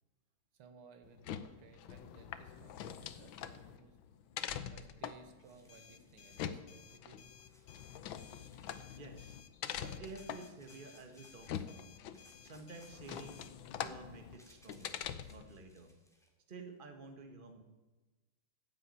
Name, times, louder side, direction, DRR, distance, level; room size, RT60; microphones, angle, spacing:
voice 1, 0.5-4.0 4.7-7.4, right 5 dB, 80° right, 8 dB, 2.2 m, -60 dB
sound 1, 1.0-15.5, left 9 dB, 70° left, 1.6 m, -45 dB
sound 2, 5.2-6.5 7.4-9.1 10.0-11.7 12.1-16.3, equal, ahead, 2.5 m, -67 dB
sound 3, 5.7-13.5, left 8 dB, 55° left, 1.2 m, -60 dB
voice 2, 9.0-9.4 9.7-11.8 12.4-13.4 13.8-15.0 15.3-15.9 16.5-17.6, right 3 dB, 25° right, 5 dB, 1.7 m, -51 dB
15.5 x 7.6 x 9.7 m, 1.2 s
omnidirectional pair, 2.3 m